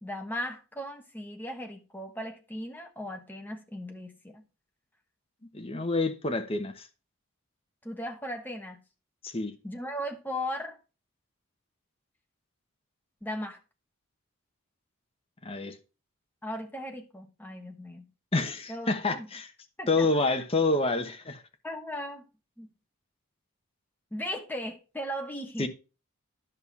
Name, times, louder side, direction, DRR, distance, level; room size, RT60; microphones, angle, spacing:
voice 1, 0.0-4.4 7.8-8.8 9.6-10.8 13.2-13.6 16.4-18.1 18.7-19.3 19.8-20.4 21.6-22.2 22.6-22.7 24.1-25.7, equal, 10° left, 1.2 m, -37 dB
voice 2, 5.5-6.9 9.2-9.5 15.4-15.8 18.3-19.5 19.9-21.4 25.6-25.7, left 3 dB, 25° left, 1.0 m, -28 dB
10.5 x 5.7 x 4.6 m
head